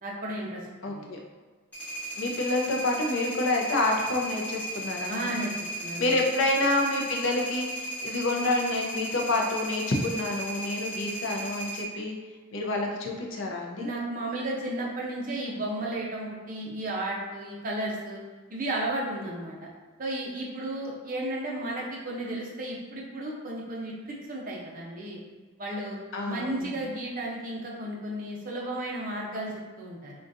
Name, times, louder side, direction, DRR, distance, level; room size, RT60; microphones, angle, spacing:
voice 1, 0.0-0.6 0.9-1.2 5.1-5.5 5.8-6.2 13.8-18.2 18.5-19.7 20.0-25.2 25.6-26.0 26.3-30.1, right 1 dB, 40° right, -3 dB, 0.6 m, -33 dB
voice 2, 0.8-1.2 2.2-5.3 6.0-12.1 12.5-13.9 26.1-26.7, left 2 dB, 65° left, 0 dB, 0.5 m, -28 dB
sound 1, 1.7-11.8, right 1 dB, 10° left, 1.1 m, -36 dB
3.8 x 2.3 x 2.5 m, 1.4 s
head